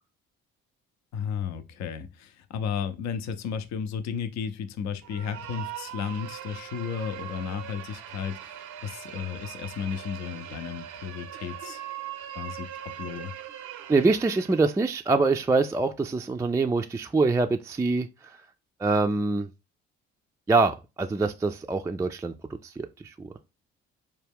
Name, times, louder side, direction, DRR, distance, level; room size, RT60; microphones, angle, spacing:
voice 1, 1.1-11.8 12.3-13.3, left 7 dB, 65° left, 0.6 m, -34 dB
sound 1, 5.0-14.9, right 11 dB, 75° right, 0.6 m, -41 dB
voice 2, 13.9-18.4 18.8-19.5 20.5-22.3 22.6-23.3, right 3 dB, 10° right, 0.3 m, -25 dB
4.6 x 2.2 x 3.4 m
supercardioid pair, 60°, 30 cm